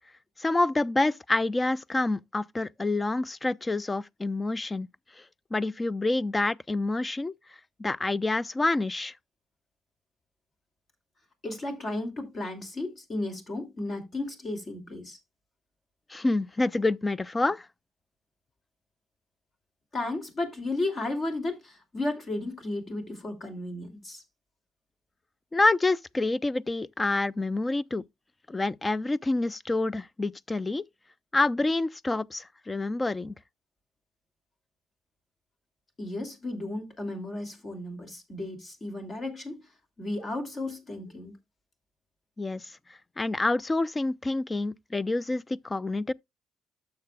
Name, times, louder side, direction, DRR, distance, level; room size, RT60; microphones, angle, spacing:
voice 1, 0.4-4.9 5.5-7.3 7.8-9.1 16.1-17.7 25.5-28.0 28.5-30.8 31.3-33.3 42.4-42.7 43.2-46.1, left 2 dB, 20° left, 0.4 m, -27 dB
voice 2, 11.4-15.2 19.9-24.2 36.0-39.6 40.0-41.4, left 2 dB, 40° left, 2.7 m, -34 dB
12.5 x 6.7 x 2.3 m
cardioid pair, 90°, 0 cm